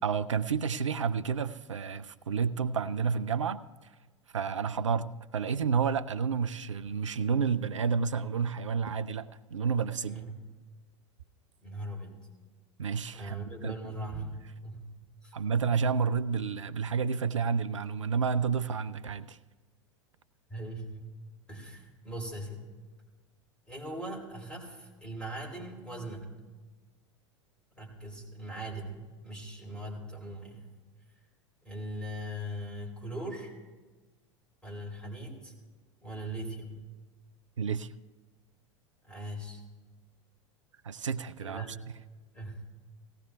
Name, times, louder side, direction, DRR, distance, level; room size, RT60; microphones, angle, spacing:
voice 1, 0.0-3.6 4.3-10.2 12.8-13.4 13.6-13.7 15.3-19.4 37.6-37.9 40.8-41.7, right 6 dB, 80° right, 14 dB, 0.4 m, -30 dB
voice 2, 10.1-10.4 11.6-12.3 13.1-14.9 15.2-15.3 20.5-21.1 21.5-22.6 23.7-26.3 27.7-30.7 31.6-33.5 34.6-35.5 36.0-36.9 39.0-39.6 41.4-41.9 42.3-42.6, right 1 dB, 5° left, -1 dB, 3.4 m, -40 dB
18.0 x 16.0 x 2.3 m, 1.3 s
figure-of-eight pair, 85°, 16 cm